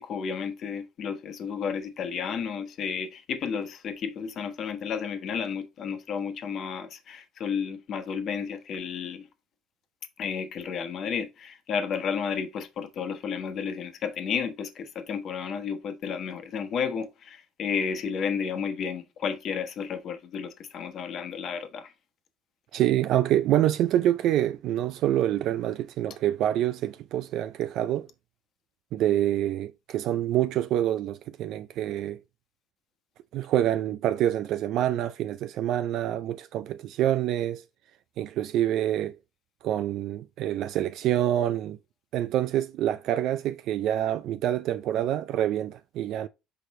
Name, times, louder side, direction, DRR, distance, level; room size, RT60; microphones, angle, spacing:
voice 1, 0.0-9.3 10.2-21.9, left 6 dB, 40° left, 1.2 m, -32 dB
voice 2, 22.7-28.1 28.9-32.2 33.3-37.6 38.2-39.1 39.6-41.8 42.1-46.3, right 12 dB, 55° right, 0.4 m, -26 dB
6.3 x 4.9 x 3.1 m
cardioid pair, 160°, 0 cm